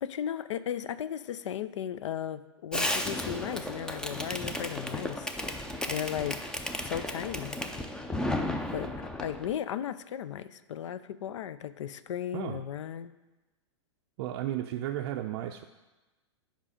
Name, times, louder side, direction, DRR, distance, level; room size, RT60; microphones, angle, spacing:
voice 1, 0.0-5.3 5.9-6.4 6.8-7.6 8.7-13.1, left 9 dB, 80° left, 15 dB, 0.4 m, -36 dB
Fireworks, 2.7-9.5, left 1 dB, 5° left, 0.4 m, -34 dB
voice 2, 14.2-15.6, right 12 dB, 55° right, 4 dB, 0.4 m, -34 dB
7.4 x 5.2 x 5.0 m, 1.1 s
hypercardioid pair, 125°, 15 cm